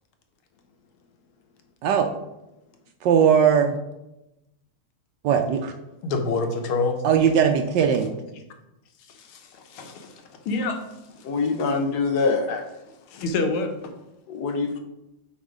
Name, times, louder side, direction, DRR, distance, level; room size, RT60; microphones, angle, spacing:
voice 1, 3.0-3.8 5.2-5.7 7.0-8.2, right 7 dB, 75° right, 5 dB, 1.0 m, -19 dB
voice 2, 6.0-7.0 9.1-10.8 11.2-11.3 12.5-12.6 13.1-13.9, left 3 dB, 85° left, 4 dB, 1.8 m, -27 dB
voice 3, 11.2-12.5 14.3-14.8, left 4 dB, 70° left, 5 dB, 0.9 m, -24 dB
8.2 x 3.7 x 4.8 m, 0.93 s
omnidirectional pair, 2.3 m